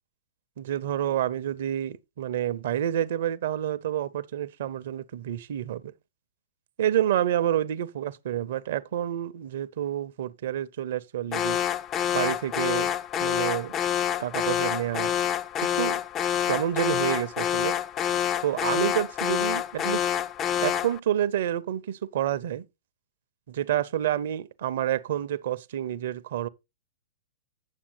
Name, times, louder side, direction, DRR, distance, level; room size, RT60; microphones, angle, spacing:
voice 1, 0.6-5.9 6.8-11.6 12.1-12.9 13.2-13.8 14.2-15.1 15.6-16.0 16.5-17.7 18.4-20.2 20.6-22.6 23.5-26.5, right 11 dB, 55° right, 0.5 m, -29 dB
Alarm, 11.3-21.0, left 10 dB, 25° left, 0.4 m, -27 dB
9.7 x 7.1 x 3.3 m
figure-of-eight pair, 110°, 0 cm